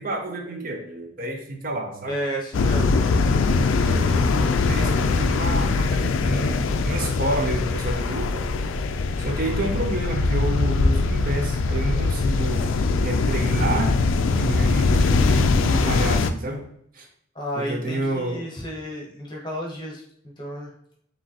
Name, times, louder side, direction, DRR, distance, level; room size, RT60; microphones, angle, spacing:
voice 1, 0.0-2.2 3.8-6.6 6.8-8.5 9.2-12.7 13.0-14.0 14.3-16.6 16.9-17.1 17.6-18.4, right 1 dB, 45° right, 3 dB, 0.6 m, -29 dB
voice 2, 2.1-3.1 17.3-20.0 20.4-20.7, equal, 20° left, -2 dB, 0.9 m, -32 dB
sound 1, 2.5-16.3, left 3 dB, 75° left, 0.4 m, -22 dB
4.9 x 3.1 x 2.8 m, 0.69 s
head